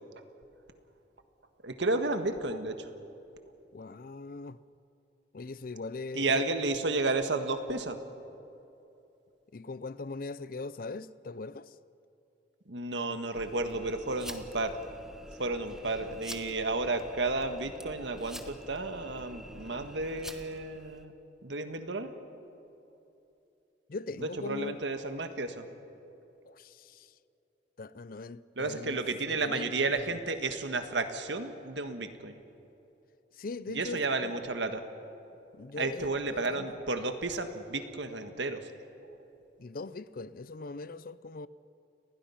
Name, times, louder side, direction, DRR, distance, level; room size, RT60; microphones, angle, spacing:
voice 1, 1.6-2.9 6.1-8.0 12.7-14.8 15.4-21.1 21.4-22.1 24.4-25.7 28.6-32.3 33.7-34.8 35.8-38.7, right 3 dB, 75° right, 1.6 m, -32 dB
voice 2, 3.7-4.6 5.3-6.4 9.5-11.8 23.9-24.8 26.4-27.1 27.8-29.0 29.3-30.2 33.3-34.3 35.5-36.7 39.6-41.5, left 3 dB, 50° left, 0.5 m, -40 dB
sound 1, 13.3-21.1, equal, 5° right, 1.1 m, -47 dB
29.5 x 20.5 x 5.8 m
head